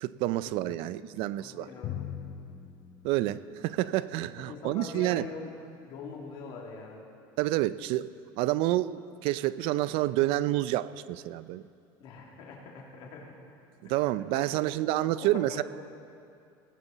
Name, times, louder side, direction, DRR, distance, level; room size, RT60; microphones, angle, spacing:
voice 1, 0.0-1.7 3.0-5.3 7.4-8.1 8.4-11.6 13.8-15.6, right 16 dB, 65° right, 17 dB, 0.4 m, -28 dB
voice 2, 1.4-2.0 4.2-5.5 5.8-7.0 12.0-13.4 13.8-13.9 14.3-14.4 14.9-15.6, left 4 dB, 55° left, -1 dB, 2.5 m, -43 dB
Drum, 1.8-4.2, left 9 dB, 40° left, 0.6 m, -41 dB
17.0 x 14.5 x 4.1 m, 2.4 s
cardioid pair, 145°, 10 cm